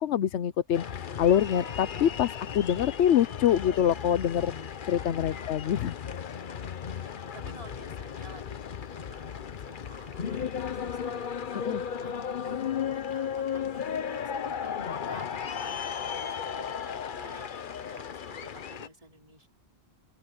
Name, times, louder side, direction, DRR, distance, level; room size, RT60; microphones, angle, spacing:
voice 1, 0.0-4.5 4.9-5.9 11.7-11.8, left 9 dB, 80° left, 1.0 m, -25 dB
sound 1, 0.7-18.9, left 7 dB, 50° left, 0.9 m, -35 dB
voice 2, 3.9-4.3 4.8-5.4 6.9-19.5, right 2 dB, 30° right, 4.1 m, -52 dB
open air
omnidirectional pair, 1.2 m